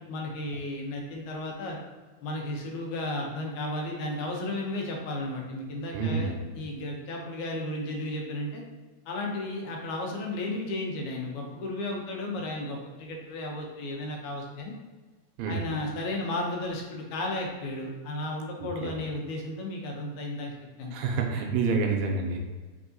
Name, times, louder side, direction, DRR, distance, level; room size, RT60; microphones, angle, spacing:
voice 1, 0.1-1.8 2.2-8.6 9.1-14.7 15.5-20.5 20.8-21.2, left 1 dB, 85° left, 0 dB, 2.1 m, -34 dB
voice 2, 5.9-6.4 15.4-15.6 18.6-18.9 20.9-22.4, right 4 dB, 80° right, 2 dB, 1.8 m, -28 dB
4.5 x 3.4 x 2.6 m, 1.3 s
omnidirectional pair, 3.4 m